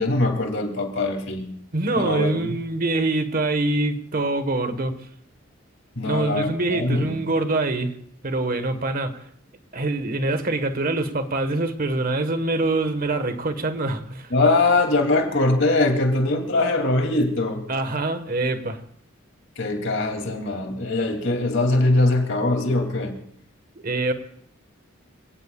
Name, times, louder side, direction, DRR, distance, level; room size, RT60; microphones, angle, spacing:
voice 1, 0.0-1.5 2.0-2.5 6.0-7.2 14.3-17.6 19.6-23.1, left 2 dB, 65° left, 2.8 m, -22 dB
voice 2, 1.7-4.9 6.0-7.9 8.2-9.3 9.7-14.3 17.7-18.8 23.7-24.1, right 2 dB, 45° right, 1.4 m, -24 dB
28.0 x 17.5 x 2.4 m
head